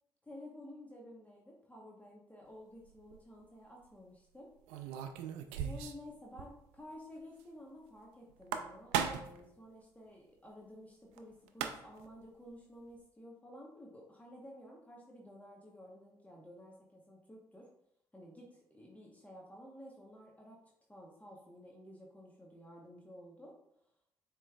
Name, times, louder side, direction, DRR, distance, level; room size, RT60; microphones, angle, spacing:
voice 1, 0.2-4.5 4.8-5.0 5.6-17.7 18.1-20.6 20.9-23.5, left 1 dB, 15° left, -2 dB, 1.1 m, -53 dB
sound 1, 2.9-3.2 4.7-6.1 6.4-6.5 6.8-6.9 8.3-9.4 11.2-11.3 11.5-12.1, right 8 dB, 80° right, 0.4 m, -37 dB
7.3 x 3.1 x 2.4 m, 0.76 s
hypercardioid pair, 45°, 11 cm